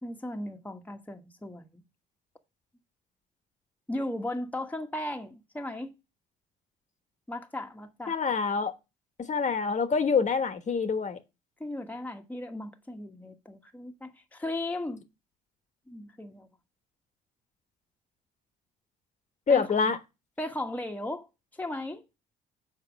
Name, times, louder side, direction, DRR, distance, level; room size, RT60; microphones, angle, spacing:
voice 1, 0.0-1.8 3.9-5.9 7.3-8.2 11.6-15.0 15.9-16.5 19.5-19.9 20.4-21.3 21.5-22.0, left 1 dB, 10° left, 1.3 m, -36 dB
voice 2, 8.1-8.7 9.2-11.2 19.5-20.0, left 5 dB, 40° left, 1.3 m, -26 dB
6.9 x 4.7 x 6.1 m
hypercardioid pair, 60°, 19 cm